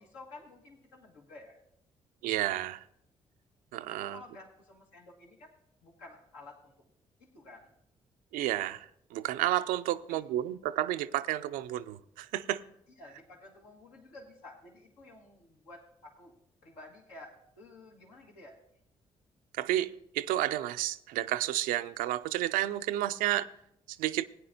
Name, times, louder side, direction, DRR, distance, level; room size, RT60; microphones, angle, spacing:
voice 1, 0.0-1.6 3.9-5.5 5.8-6.7 7.3-7.7 10.1-10.2 13.0-18.5, left 2 dB, 85° left, 1.5 m, -52 dB
voice 2, 2.2-2.8 3.7-4.2 8.3-12.6 19.6-23.5 23.9-24.2, right 14 dB, 75° right, 0.4 m, -31 dB
17.5 x 9.4 x 2.6 m
hypercardioid pair, 45°, 14 cm